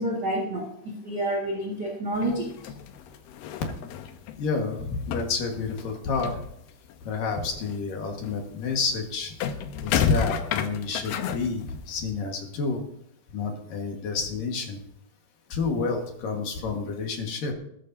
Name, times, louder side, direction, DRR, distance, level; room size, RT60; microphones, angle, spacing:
voice 1, 0.0-2.5, right 1 dB, 35° right, -3 dB, 1.9 m, -29 dB
sound 1, 2.1-4.8 5.0-7.0 7.3-12.0, left 9 dB, 75° left, 2.6 m, -32 dB
voice 2, 4.4-6.4 7.0-9.3 9.8-12.8 13.3-14.8 15.5-17.5, left 4 dB, 60° left, 2 dB, 3.1 m, -29 dB
21.0 x 11.0 x 2.8 m, 0.74 s
omnidirectional pair, 4.9 m